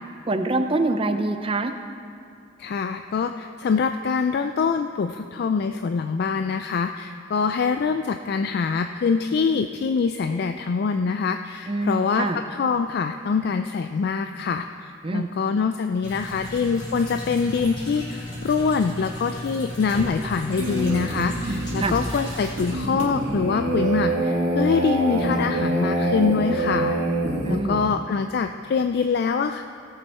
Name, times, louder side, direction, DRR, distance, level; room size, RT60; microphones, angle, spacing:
voice 1, 0.3-1.7 11.7-12.4 15.0-15.3 21.5-21.9 27.4-27.8, right 2 dB, 25° right, 8 dB, 0.5 m, -25 dB
voice 2, 2.6-14.7 15.1-26.9 27.5-29.6, left 5 dB, 50° left, 8 dB, 0.3 m, -24 dB
sound 1, 16.0-22.8, left 1 dB, 20° left, 2.7 m, -35 dB
sound 2, 20.6-27.6, right 1 dB, 85° right, 1.9 m, -25 dB
17.0 x 7.0 x 4.3 m, 2.5 s
head